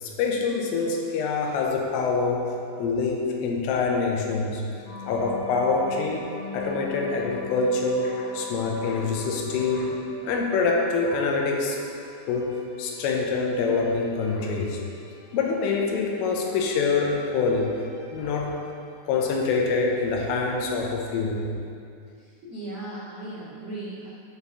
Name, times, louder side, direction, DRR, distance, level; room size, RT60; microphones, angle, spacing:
voice 1, 0.0-2.5 2.8-4.6 5.1-6.3 6.5-11.8 12.3-12.5 12.8-14.8 15.3-17.7 18.1-18.5 19.1-21.4, left 4 dB, 85° left, 0 dB, 3.5 m, -25 dB
sound 1, 4.9-19.3, left 2 dB, 65° left, 3.8 m, -43 dB
voice 2, 22.1-24.1, right 2 dB, 75° right, -11 dB, 1.3 m, -37 dB
9.3 x 4.4 x 6.9 m, 2.4 s
omnidirectional pair, 5.8 m